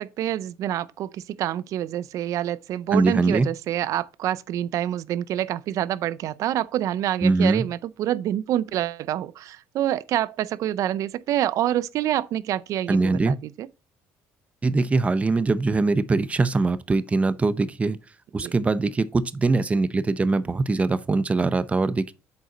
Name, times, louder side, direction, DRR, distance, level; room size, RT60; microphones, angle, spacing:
voice 1, 0.0-13.7 18.4-18.5, right 12 dB, 65° right, 0.5 m, -27 dB
voice 2, 2.9-3.5 7.2-7.7 12.9-13.4 14.6-18.0 18.3-22.1, right 3 dB, 20° right, 0.6 m, -22 dB
8.0 x 5.1 x 3.9 m
cardioid pair, 95°, 6 cm